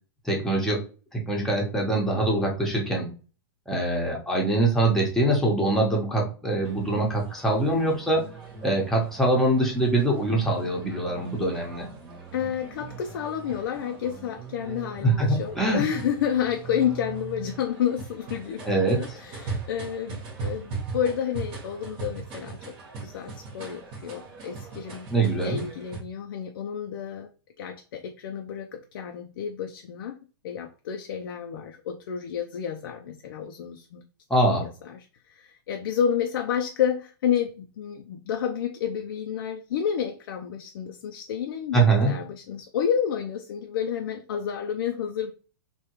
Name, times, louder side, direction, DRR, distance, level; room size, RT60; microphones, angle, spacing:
voice 1, 0.2-0.8 1.1-3.1 3.7-8.2 8.6-11.9 15.0-15.8 18.6-19.2 25.1-25.6 34.3-34.7 41.7-42.1, right 2 dB, 5° left, -2 dB, 0.9 m, -23 dB
sound 1, 6.6-26.0, right 4 dB, 35° right, 1.1 m, -40 dB
voice 2, 12.3-18.6 18.9-22.8 23.0-25.1 25.4-27.3 27.6-30.1 30.4-34.0 34.6-41.8 42.1-45.3, left 8 dB, 65° left, 4 dB, 0.4 m, -30 dB
3.4 x 2.3 x 2.9 m, 0.36 s
hypercardioid pair, 130°, 13 cm